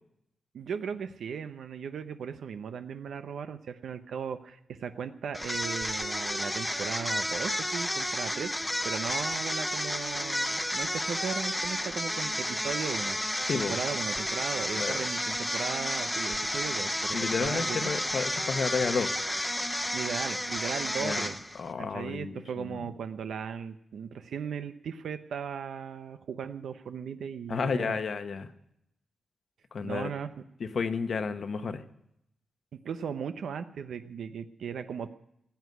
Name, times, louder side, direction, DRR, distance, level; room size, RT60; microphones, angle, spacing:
voice 1, 0.5-17.9 19.9-21.4 21.8-28.0 29.8-30.3 32.8-35.1, right 7 dB, 85° right, 9 dB, 0.8 m, -37 dB
sound 1, 5.3-21.7, left 1 dB, 5° left, 0.6 m, -31 dB
voice 2, 13.5-13.8 14.7-15.0 17.1-19.1 21.0-21.3 21.5-22.8 27.5-28.5 29.7-30.1 30.6-31.8, left 5 dB, 55° left, 9 dB, 1.0 m, -31 dB
16.0 x 8.1 x 9.5 m, 0.78 s
wide cardioid pair, 140°, 0 cm